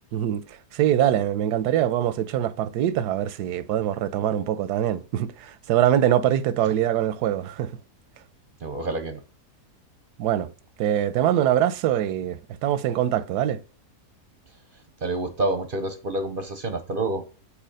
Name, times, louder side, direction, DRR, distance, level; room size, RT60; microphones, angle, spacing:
voice 1, 0.1-0.4 0.7-7.7 10.2-10.5 10.8-13.6, right 11 dB, 85° right, 1.1 m, -23 dB
voice 2, 8.6-9.2 15.0-17.2, right 2 dB, 50° right, 0.6 m, -28 dB
8.3 x 2.9 x 5.2 m
omnidirectional pair, 1.7 m